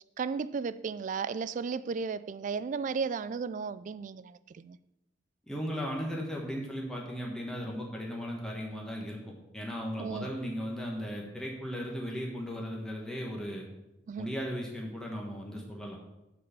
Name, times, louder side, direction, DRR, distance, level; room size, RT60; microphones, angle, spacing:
voice 1, 0.2-4.8 10.0-10.3 14.1-14.3, right 5 dB, 45° right, 16 dB, 0.3 m, -34 dB
voice 2, 5.5-9.2 9.5-13.6 14.2-16.0, equal, 5° left, -2 dB, 1.2 m, -36 dB
8.5 x 4.2 x 6.8 m, 0.94 s
head